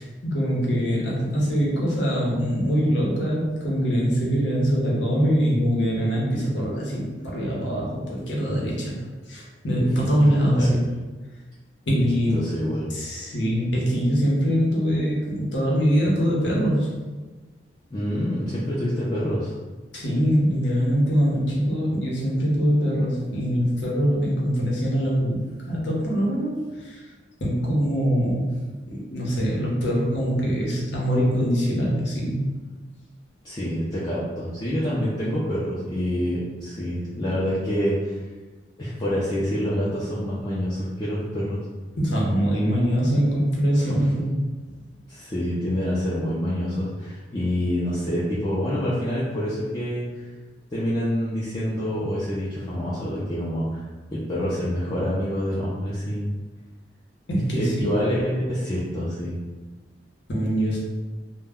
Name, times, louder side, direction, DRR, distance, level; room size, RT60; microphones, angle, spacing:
voice 1, 0.0-8.9 9.3-10.9 11.9-12.5 12.9-16.9 19.9-27.0 27.4-28.5 28.9-32.5 42.0-44.4 57.3-57.9 60.3-60.8, equal, 85° left, -4 dB, 0.8 m, -23 dB
voice 2, 10.2-10.7 12.3-12.9 17.9-19.5 33.4-38.1 38.8-41.6 43.7-43.9 44.7-44.8 45.1-50.3 50.7-53.8 54.3-56.3 57.5-59.3, equal, 25° left, -9 dB, 0.4 m, -27 dB
2.1 x 2.1 x 3.5 m, 1.3 s
head